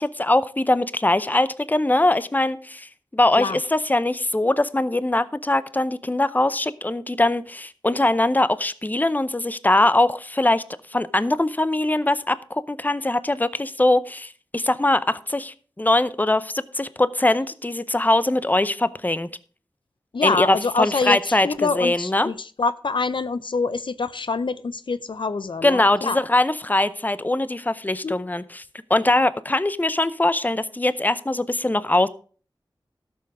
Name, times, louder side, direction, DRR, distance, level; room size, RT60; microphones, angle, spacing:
voice 1, 0.0-10.6 10.9-19.3 20.2-22.3 25.6-28.6 28.9-32.1, left 2 dB, 20° left, 0.6 m, -22 dB
voice 2, 20.1-26.2 28.0-28.1, left 4 dB, 70° left, 0.5 m, -25 dB
13.0 x 7.0 x 4.8 m
wide cardioid pair, 50°, 9 cm